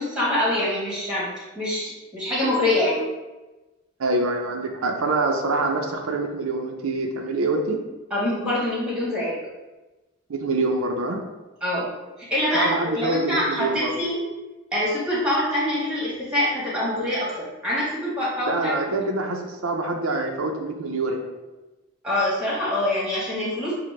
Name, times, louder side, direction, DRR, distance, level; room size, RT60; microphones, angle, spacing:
voice 1, 0.0-3.0 8.1-9.4 11.6-11.9 12.2-14.2 14.7-18.7 22.0-23.7, left 1 dB, 5° right, -7 dB, 1.2 m, -25 dB
voice 2, 4.0-7.8 10.3-11.2 12.5-13.9 18.5-21.3, right 2 dB, 85° right, 2 dB, 0.5 m, -25 dB
5.8 x 2.1 x 3.2 m, 1.1 s
head